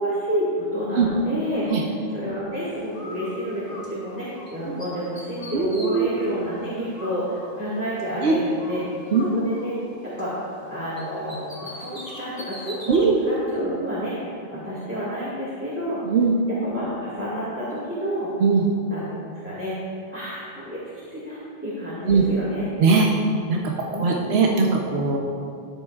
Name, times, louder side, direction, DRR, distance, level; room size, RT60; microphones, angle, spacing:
voice 1, 0.0-1.7 2.1-8.8 9.3-9.8 10.0-10.4 10.7-13.0 13.2-16.0 16.6-18.3 18.9-19.8 20.1-20.8 21.1-22.7 23.9-24.5, equal, 10° right, -10 dB, 1.8 m, -30 dB
Bird, 2.9-4.5 4.8-8.2 8.6-10.7 11.0-13.1, left 1 dB, 25° left, 2.1 m, -41 dB
voice 2, 5.5-6.1 8.2-8.4 9.1-9.4 12.9-13.2 16.0-16.3 18.4-18.7 22.1-22.2 22.8-23.1 23.5-25.2, right 4 dB, 80° right, -1 dB, 1.0 m, -20 dB
13.5 x 10.0 x 2.4 m, 2.5 s
omnidirectional pair, 1.1 m